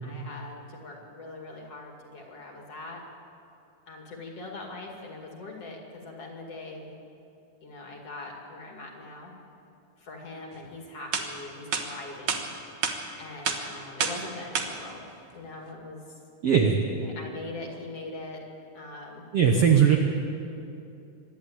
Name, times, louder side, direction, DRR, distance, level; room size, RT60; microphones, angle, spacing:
voice 1, 0.0-3.0 3.9-7.0 7.6-9.3 10.0-12.5 13.2-16.0 17.0-18.4 18.7-19.2, left 2 dB, 45° left, 0 dB, 2.9 m, -42 dB
sound 1, 10.6-10.7 11.1-11.3 11.7-11.8 12.3-12.4 12.8-13.0 13.4-13.6 14.0-14.2 14.5-14.7, right 6 dB, 65° right, 1.3 m, -27 dB
voice 2, 16.4-16.8 19.3-20.0, right 7 dB, 85° right, 3 dB, 1.3 m, -19 dB
26.0 x 11.5 x 8.8 m, 2.7 s
omnidirectional pair, 4.5 m